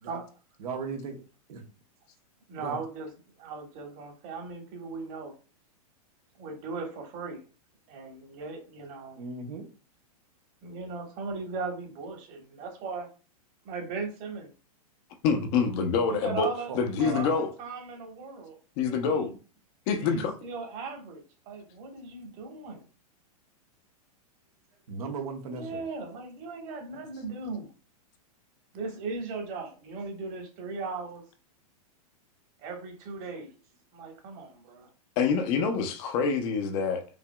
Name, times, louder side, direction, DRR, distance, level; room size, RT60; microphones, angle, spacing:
voice 1, 0.6-1.2 1.5-1.6 2.6-2.8 9.2-9.7 16.7-17.3 24.9-25.8, right 4 dB, 70° right, 1.0 m, -37 dB
voice 2, 2.5-3.1 3.4-5.3 6.4-7.4 7.9-9.2 10.6-13.1 13.6-14.5 16.1-18.6 19.0-19.3 20.0-22.8 25.5-27.7 28.7-31.2 32.6-33.6 33.9-34.9, right 4 dB, 45° right, 1.5 m, -38 dB
voice 3, 15.2-16.5 16.7-17.5 18.8-19.3 19.9-20.3 35.2-37.0, left 5 dB, 45° left, 0.8 m, -26 dB
5.0 x 2.8 x 2.3 m
hypercardioid pair, 115°, 20 cm